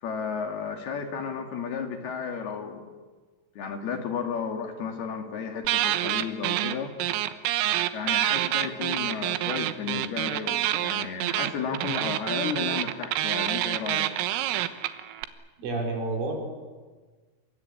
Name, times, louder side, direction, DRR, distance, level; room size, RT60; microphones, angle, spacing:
voice 1, 0.0-2.9 3.6-6.9 7.9-14.1, left 6 dB, 60° left, 4 dB, 3.8 m, -33 dB
sound 1, 5.7-6.8 7.0-15.3, right 14 dB, 90° right, 3.8 m, -27 dB
voice 2, 15.6-16.4, right 2 dB, 70° right, 2 dB, 7.2 m, -29 dB
28.5 x 24.5 x 8.4 m, 1.4 s
omnidirectional pair, 5.7 m